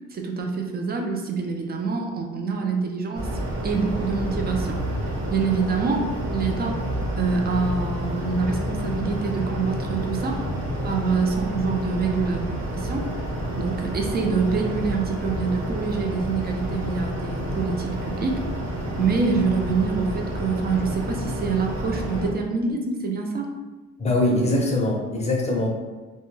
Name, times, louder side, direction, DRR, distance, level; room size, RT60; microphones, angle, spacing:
voice 1, 0.1-3.3 3.6-4.8 5.3-6.9 7.2-10.4 10.8-12.4 12.7-13.1 13.6-18.4 19.0-23.5, right 4 dB, 35° right, 2 dB, 0.4 m, -26 dB
sound 1, 3.1-22.3, equal, 50° right, 0.8 m, -29 dB
voice 2, 24.0-25.7, left 1 dB, 20° left, -1 dB, 0.6 m, -22 dB
2.2 x 2.1 x 3.1 m, 1.2 s
cardioid pair, 90°, 30 cm